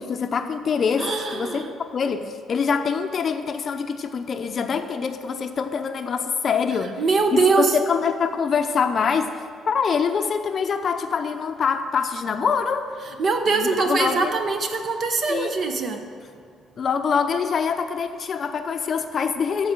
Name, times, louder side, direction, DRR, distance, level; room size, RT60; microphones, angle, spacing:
voice 1, 0.0-7.0 7.3-9.4 9.7-12.9 13.5-14.3 15.3-15.6 16.8-19.7, left 6 dB, 45° left, 7 dB, 0.7 m, -25 dB
voice 2, 1.0-1.7 7.0-7.8 13.2-16.0, right 4 dB, 45° right, 5 dB, 1.1 m, -22 dB
14.0 x 4.8 x 7.7 m, 2.2 s
cardioid pair, 120°, 0 cm